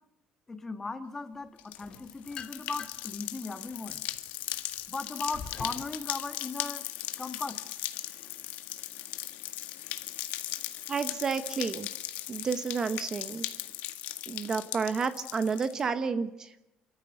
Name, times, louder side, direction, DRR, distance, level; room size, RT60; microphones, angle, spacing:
voice 1, 0.5-4.0 4.9-6.9 7.2-7.6, left 3 dB, 15° left, 8 dB, 1.5 m, -37 dB
sound 1, 1.6-15.8, left 14 dB, 70° left, 1.8 m, -38 dB
sound 2, 1.8-3.2 3.7-6.0, left 7 dB, 35° left, 1.8 m, -45 dB
voice 2, 10.9-11.9 12.3-13.4 14.3-16.6, right 5 dB, 25° right, 10 dB, 0.9 m, -31 dB
29.5 x 14.5 x 7.9 m, 0.90 s
cardioid pair, 175°, 3 cm